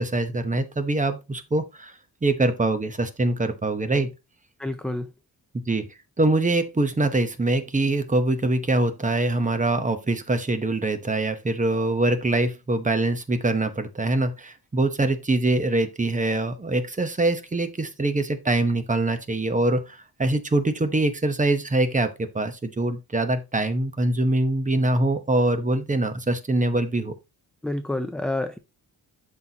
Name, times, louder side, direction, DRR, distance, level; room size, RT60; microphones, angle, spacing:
voice 1, 0.0-1.9 2.2-4.1 5.7-5.8 6.2-22.1 22.3-27.1, right 2 dB, 20° right, 0.8 m, -24 dB
voice 2, 4.6-5.1 27.6-28.6, left 1 dB, ahead, 0.3 m, -28 dB
11.5 x 4.1 x 2.8 m
wide cardioid pair, 160°, 38 cm